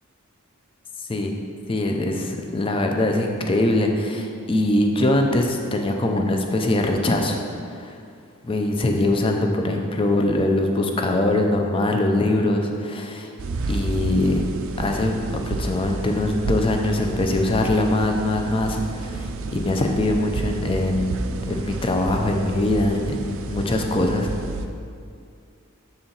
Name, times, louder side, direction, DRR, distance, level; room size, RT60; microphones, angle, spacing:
voice 1, 1.7-7.4 7.7-8.0 8.4-13.3 13.7-14.5 14.8-21.1 21.4-23.2 23.5-24.3, left 1 dB, 25° left, 3 dB, 0.5 m, -22 dB
sound 1, 13.4-24.7, right 3 dB, 65° right, 0.4 m, -30 dB
6.8 x 4.3 x 3.9 m, 2.3 s
head